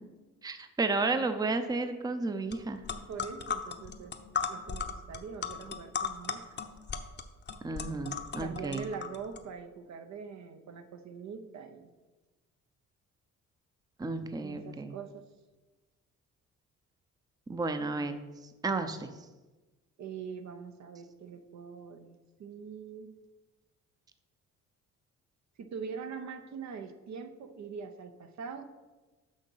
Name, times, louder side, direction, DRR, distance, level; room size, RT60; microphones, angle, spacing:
voice 1, 0.4-2.8 7.6-8.8 14.0-15.0 17.5-18.2 18.6-19.1, right 3 dB, 15° right, 8 dB, 0.6 m, -32 dB
sound 1, 2.5-2.6 2.8-9.4, left 6 dB, 35° left, 0.7 m, -36 dB
voice 2, 3.1-4.1 4.5-6.4 8.4-11.9 14.4-15.3 20.0-23.1 25.6-28.7, right 6 dB, 65° right, 7 dB, 0.8 m, -43 dB
6.4 x 6.2 x 5.6 m, 1.2 s
cardioid pair, 90°, 30 cm